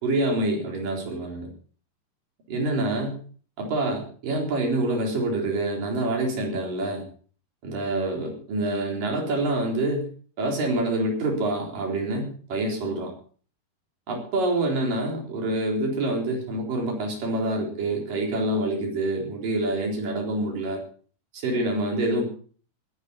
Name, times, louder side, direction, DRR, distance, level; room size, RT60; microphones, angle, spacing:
voice 1, 0.0-1.5 2.5-3.2 3.6-7.0 7.6-10.1 10.4-13.1 14.1-20.8 21.3-22.3, right 2 dB, 60° right, 1 dB, 5.6 m, -26 dB
20.0 x 12.0 x 4.2 m, 0.43 s
omnidirectional pair, 4.3 m